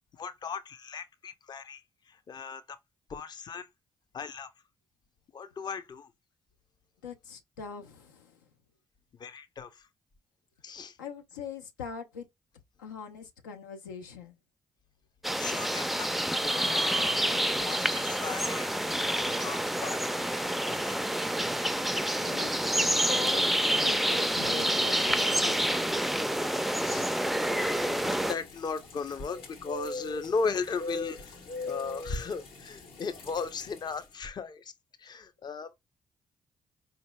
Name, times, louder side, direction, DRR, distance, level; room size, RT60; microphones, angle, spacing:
voice 1, 0.2-1.8 2.1-2.8 3.1-3.7 4.1-4.5 5.3-6.1 9.2-9.8 10.6-11.0 15.4-16.1 16.4-18.8 19.1-20.2 20.7-21.0 26.7-34.7 35.0-35.7, left 5 dB, 45° left, 0.7 m, -37 dB
voice 2, 7.0-8.3 11.0-12.3 12.8-14.3 22.1-25.6, left 6 dB, 90° left, 0.5 m, -41 dB
sound 1, 15.2-28.3, right 1 dB, ahead, 0.4 m, -28 dB
sound 2, 27.4-34.0, left 2 dB, 70° left, 1.2 m, -41 dB
4.5 x 2.8 x 2.2 m
hypercardioid pair, 45°, 10 cm